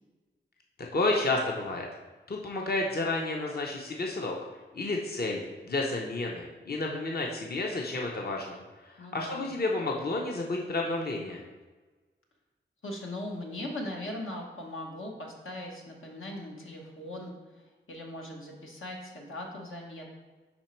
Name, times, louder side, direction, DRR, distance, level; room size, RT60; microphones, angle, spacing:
voice 1, 0.9-1.9 2.3-4.3 4.7-5.4 5.7-8.6 8.9-11.4, left 2 dB, 50° left, -1 dB, 0.7 m, -31 dB
voice 2, 9.0-9.5 12.8-20.1, left 1 dB, 85° left, -1 dB, 1.1 m, -40 dB
5.1 x 4.4 x 4.4 m, 1.3 s
wide cardioid pair, 65°, 20 cm